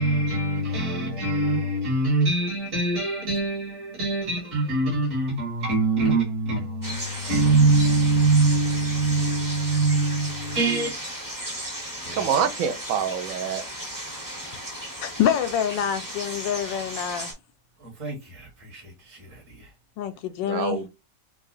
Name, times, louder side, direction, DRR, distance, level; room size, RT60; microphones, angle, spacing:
voice 1, 0.0-11.0 12.0-12.5 17.8-19.7, right 3 dB, 45° right, 2.1 m, -24 dB
sound 1, 6.8-17.3, right 1 dB, 15° right, 0.8 m, -35 dB
voice 2, 12.1-13.6 20.4-20.9, right 7 dB, 70° right, 0.8 m, -26 dB
voice 3, 15.0-17.3 20.0-20.8, left 9 dB, 90° left, 1.3 m, -26 dB
4.7 x 2.4 x 2.5 m
omnidirectional pair, 2.0 m